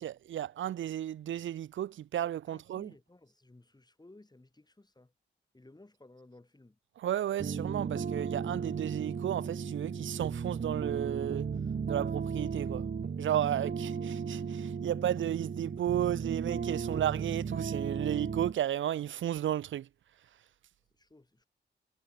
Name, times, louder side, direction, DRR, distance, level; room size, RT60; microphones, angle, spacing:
voice 1, 0.0-2.9 7.0-11.5 11.9-12.9 13.2-19.9, right 11 dB, 80° right, 0.6 m, -33 dB
voice 2, 2.5-5.1 5.5-6.8 21.0-21.5, left 2 dB, 20° left, 7.5 m, -58 dB
sound 1, 7.4-18.5, right 6 dB, 55° right, 1.9 m, -35 dB
cardioid pair, 65°, 20 cm